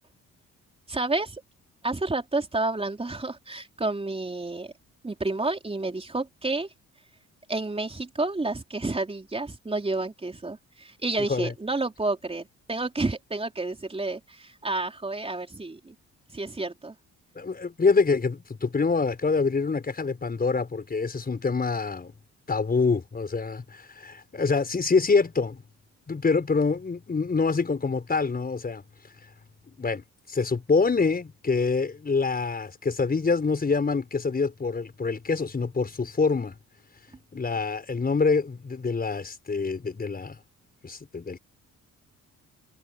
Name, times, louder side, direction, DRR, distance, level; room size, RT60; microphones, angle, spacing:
voice 1, 0.9-1.4 1.8-4.7 5.0-6.7 7.5-16.0 16.3-16.9, right 2 dB, 20° right, 3.9 m, -30 dB
voice 2, 17.4-22.1 22.5-25.6 26.1-28.8 29.8-36.5 37.3-40.4 40.8-41.4, left 4 dB, 30° left, 5.5 m, -26 dB
cardioid pair, 90°, 30 cm